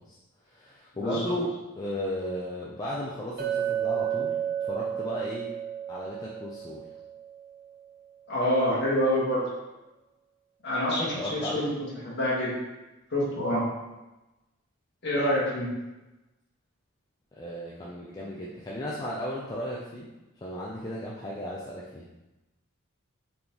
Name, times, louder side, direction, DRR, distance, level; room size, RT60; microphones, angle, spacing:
voice 1, 0.5-5.5 5.9-6.8 11.2-11.7 17.4-20.1 20.4-22.0, equal, 15° left, -5 dB, 0.3 m, -35 dB
voice 2, 1.0-1.3 8.3-9.4 10.6-11.7 12.0-12.5 13.1-13.7 15.0-15.7, equal, 50° left, -6 dB, 1.3 m, -26 dB
Chink clink, 3.4-7.6, right 9 dB, 45° right, 0.5 m, -32 dB
4.2 x 3.4 x 2.9 m, 1.0 s
head